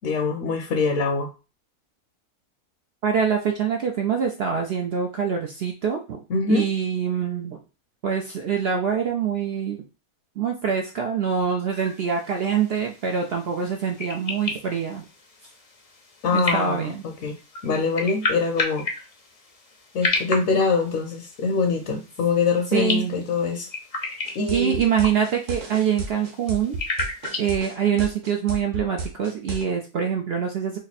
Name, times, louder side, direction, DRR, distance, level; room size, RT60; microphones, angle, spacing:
voice 1, 0.0-1.3 6.3-6.6 16.2-17.4 17.6-18.9 19.9-23.7 24.3-24.8, left 4 dB, 65° left, 2 dB, 0.9 m, -24 dB
voice 2, 3.0-6.2 6.5-7.6 8.0-9.8 10.4-15.0 16.3-17.0 22.7-23.2 24.5-26.8 27.4-30.8, right 7 dB, 75° right, 2 dB, 0.5 m, -25 dB
sound 1, 11.7-27.6, left 3 dB, 45° left, 0.4 m, -33 dB
sound 2, 24.3-29.6, right 3 dB, 55° right, 1.2 m, -32 dB
3.1 x 2.6 x 4.0 m, 0.32 s
omnidirectional pair, 1.6 m